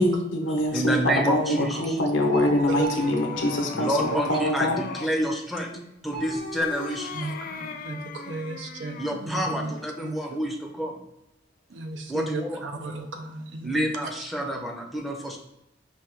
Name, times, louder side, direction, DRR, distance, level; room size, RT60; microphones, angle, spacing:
voice 1, 0.0-4.8, left 1 dB, 85° left, 2 dB, 0.9 m, -24 dB
voice 2, 0.7-2.0 3.7-5.7 6.0-7.1 9.0-11.0 12.1-12.6 13.6-15.4, equal, ahead, 0 dB, 0.5 m, -28 dB
voice 3, 1.5-1.9 2.7-2.9 4.1-4.2 7.1-9.7 10.0-10.4 11.7-14.1, right 3 dB, 85° right, 5 dB, 0.6 m, -35 dB
sound 1, 2.2-5.2 6.1-9.3, left 5 dB, 50° left, 0.4 m, -39 dB
sound 2, 2.3-5.0 6.1-7.9, right 5 dB, 55° right, 1.7 m, -41 dB
4.9 x 2.3 x 4.4 m, 0.87 s
head